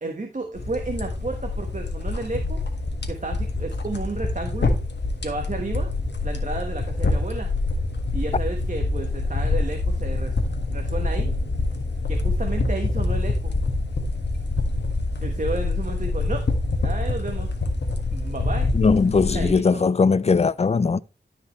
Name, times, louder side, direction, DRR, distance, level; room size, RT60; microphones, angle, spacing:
voice 1, 0.0-2.6 3.1-4.8 5.2-5.9 6.2-7.5 8.1-10.4 10.7-11.3 12.1-13.5 15.2-16.5 16.8-17.5 18.1-18.7 19.3-19.9, right 3 dB, 45° right, 1.3 m, -32 dB
sound 1, 0.6-19.5, left 2 dB, 80° left, 1.6 m, -26 dB
voice 2, 18.7-21.0, left 4 dB, 35° left, 0.4 m, -19 dB
12.5 x 5.4 x 3.2 m
wide cardioid pair, 65°, 18 cm